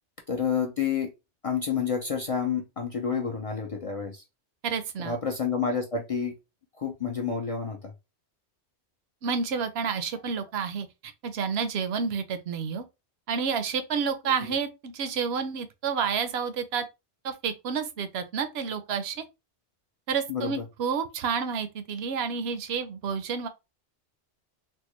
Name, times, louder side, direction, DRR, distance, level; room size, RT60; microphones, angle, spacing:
voice 1, 0.3-1.1 1.4-4.2 5.0-6.3 6.8-7.9 20.3-20.6, left 6 dB, 50° left, 0.4 m, -29 dB
voice 2, 4.6-5.2 9.2-12.8 13.3-16.8 17.2-19.2 20.1-23.5, right 6 dB, 70° right, 0.8 m, -30 dB
3.6 x 2.1 x 3.0 m
omnidirectional pair, 1.2 m